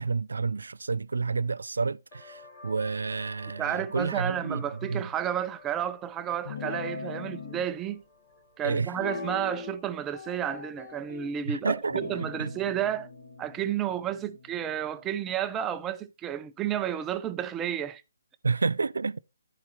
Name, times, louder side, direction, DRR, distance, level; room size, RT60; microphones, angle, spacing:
voice 1, 0.0-4.6 4.9-5.0 8.6-8.9 11.5-12.5 18.4-19.2, right 4 dB, 90° right, 0.3 m, -30 dB
sound 1, 2.1-13.4, left 3 dB, 25° left, 2.2 m, -55 dB
voice 2, 3.6-8.0 8.6-13.1 13.4-18.0, right 10 dB, 10° right, 0.4 m, -31 dB
Guitar, 6.4-7.7 8.9-9.8 10.1-11.3 11.9-15.4, left 4 dB, 55° left, 1.7 m, -40 dB
13.0 x 4.8 x 2.9 m
hypercardioid pair, 170°, 0 cm